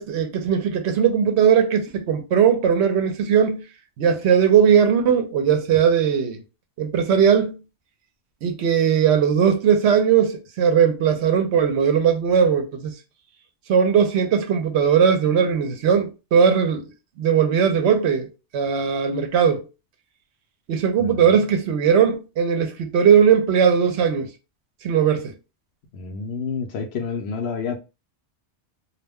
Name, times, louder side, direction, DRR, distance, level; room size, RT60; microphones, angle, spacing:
voice 1, 0.0-3.6 4.0-6.4 6.8-7.6 8.4-12.9 13.7-16.9 17.2-18.3 18.5-19.6 20.7-24.3 24.8-25.3, right 7 dB, 70° right, 0.8 m, -19 dB
voice 2, 21.0-21.3 25.9-27.8, left 5 dB, 65° left, 0.8 m, -29 dB
2.4 x 2.1 x 3.4 m
omnidirectional pair, 1.2 m